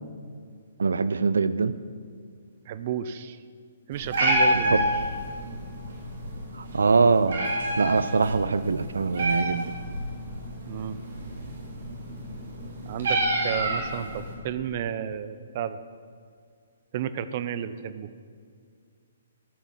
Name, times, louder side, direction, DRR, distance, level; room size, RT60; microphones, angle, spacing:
voice 1, 0.8-1.7 4.7-4.8 6.6-7.4 7.8-9.7, right 4 dB, 90° right, 14 dB, 0.5 m, -23 dB
voice 2, 2.7-3.4 3.9-4.9 10.7-11.0 12.8-15.8 16.9-18.1, right 9 dB, 45° right, 13 dB, 0.6 m, -32 dB
Meow, 3.9-14.3, right 1 dB, 70° right, 3.5 m, -29 dB
14.0 x 6.3 x 7.4 m, 2.1 s
hypercardioid pair, 150°, 0 cm